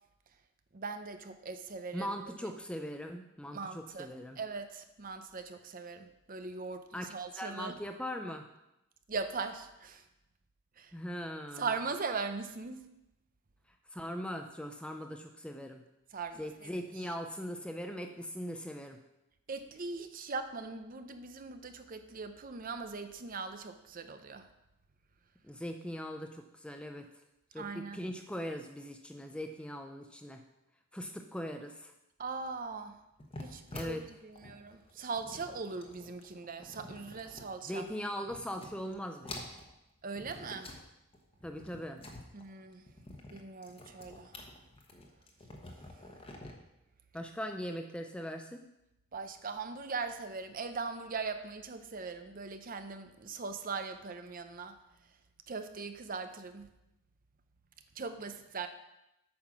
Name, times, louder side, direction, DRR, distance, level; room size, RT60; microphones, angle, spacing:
voice 1, 0.7-2.1 3.5-4.1 4.4-7.7 9.1-10.0 10.8-10.9 11.6-12.8 16.1-16.7 19.5-24.5 27.6-28.0 32.2-33.0 33.4-37.8 40.0-40.7 42.3-42.8 43.3-44.3 49.1-54.7 55.5-56.7 58.0-58.7, right 4 dB, 40° right, 9 dB, 0.6 m, -40 dB
voice 2, 1.9-4.4 6.9-8.5 10.9-11.7 13.9-15.8 16.4-19.0 25.4-27.1 27.5-30.4 30.9-31.9 33.7-34.1 37.6-39.5 41.4-42.0 47.1-48.6, equal, 5° left, 5 dB, 0.4 m, -40 dB
sound 1, 33.2-37.9 38.2-39.0 39.2-40.8 41.1-46.5, left 1 dB, 25° left, 1.1 m, -48 dB
8.7 x 5.7 x 6.0 m, 0.90 s
head